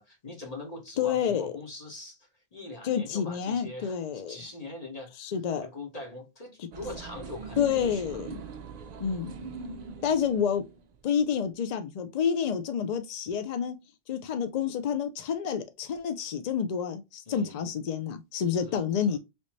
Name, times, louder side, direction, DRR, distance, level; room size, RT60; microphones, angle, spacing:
voice 1, 0.0-5.2 5.6-8.2 9.2-9.3 17.3-17.6 18.5-18.8 19.1-19.2, left 2 dB, 35° left, 1.1 m, -42 dB
voice 2, 1.0-1.5 2.8-4.4 5.2-5.7 6.6-6.7 7.6-8.4 9.0-9.3 10.0-10.6 11.0-13.8 14.1-19.2, left 7 dB, 70° left, 0.4 m, -29 dB
sound 1, 6.7-11.2, right 4 dB, 65° right, 0.4 m, -42 dB
3.4 x 2.6 x 3.0 m
omnidirectional pair, 1.2 m